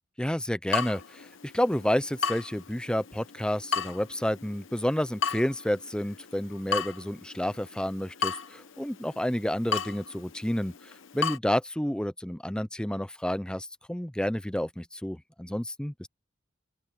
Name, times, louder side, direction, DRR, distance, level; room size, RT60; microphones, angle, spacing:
voice 1, 0.2-16.1, equal, 5° left, 0.5 m, -30 dB
Water tap faucet / Drip, 0.7-11.4, left 6 dB, 85° left, 1.0 m, -35 dB
open air
head